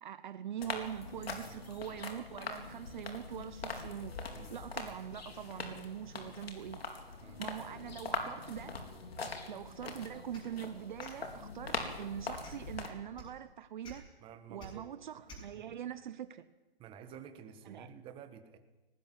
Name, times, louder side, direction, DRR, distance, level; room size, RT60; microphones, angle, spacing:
voice 1, 0.0-4.2 4.5-6.8 7.4-8.8 9.5-14.1 14.5-16.5 17.6-17.9, right 10 dB, 50° right, 1.0 m, -43 dB
sound 1, 0.6-12.9, left 4 dB, 80° left, 4.1 m, -42 dB
sound 2, 10.3-10.5 11.0-11.1 11.7-11.9 12.4-12.7 13.2-13.3 13.8-14.0 14.6-14.7 15.3-15.4, left 1 dB, 15° left, 6.2 m, -50 dB
voice 2, 14.2-14.9 15.5-15.7 16.8-18.6, right 8 dB, 15° right, 1.6 m, -51 dB
19.0 x 18.5 x 9.5 m
hypercardioid pair, 150°, 30 cm